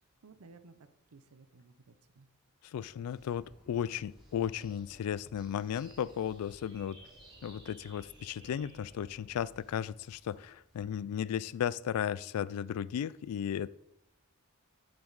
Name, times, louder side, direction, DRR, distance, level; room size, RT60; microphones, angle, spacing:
voice 1, 0.2-2.3, right 3 dB, 85° right, 12 dB, 0.7 m, -57 dB
voice 2, 2.6-7.0 7.4-13.7, left 9 dB, 85° left, 18 dB, 0.3 m, -35 dB
sound 1, 2.8-10.8, equal, ahead, 3.5 m, -65 dB
sound 2, 3.2-9.7, right 1 dB, 20° right, 1.3 m, -57 dB
7.4 x 7.2 x 4.0 m, 0.78 s
head